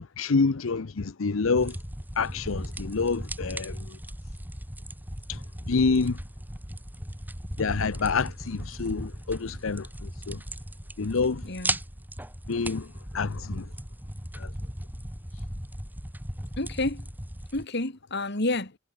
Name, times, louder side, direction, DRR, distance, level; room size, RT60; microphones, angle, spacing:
voice 1, 0.2-1.8 2.2-3.8 5.3-5.4 5.7-6.2 7.6-10.4 11.0-11.4 12.5-12.9 13.1-13.7 14.4-14.5, left 4 dB, 80° left, 0.7 m, -27 dB
sound 1, 1.5-17.7, right 1 dB, 10° right, 7.3 m, -37 dB
voice 2, 11.4-11.8 16.6-17.0 17.5-18.7, left 2 dB, 55° left, 2.7 m, -29 dB
head